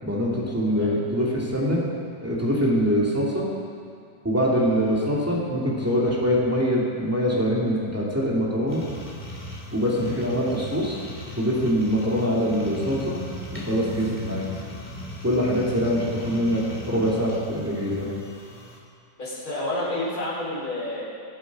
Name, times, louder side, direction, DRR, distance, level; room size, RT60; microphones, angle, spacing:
voice 1, 0.0-1.8 2.2-3.5 4.2-8.8 9.7-11.0 11.4-13.2 13.5-14.4 15.2-18.1, equal, 10° right, -5 dB, 2.5 m, -24 dB
voice 2, 0.7-1.0 10.0-10.2 19.2-21.1, left 1 dB, 60° left, -7 dB, 4.7 m, -30 dB
sound 1, 8.7-18.8, equal, 5° left, 2.6 m, -38 dB
21.5 x 8.3 x 4.9 m, 2.3 s
omnidirectional pair, 1.8 m